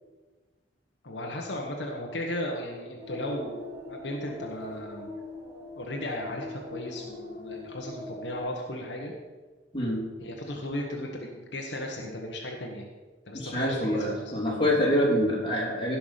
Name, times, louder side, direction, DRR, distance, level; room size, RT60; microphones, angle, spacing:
voice 1, 1.0-3.6 3.9-5.1 5.8-9.1 10.2-12.9 13.3-14.4, left 1 dB, 70° left, 0 dB, 1.4 m, -35 dB
sound 1, 3.0-8.4, left 2 dB, 15° right, 2.5 m, -41 dB
voice 2, 13.3-16.0, equal, 30° left, -4 dB, 3.2 m, -26 dB
16.0 x 6.0 x 5.8 m, 1.3 s
head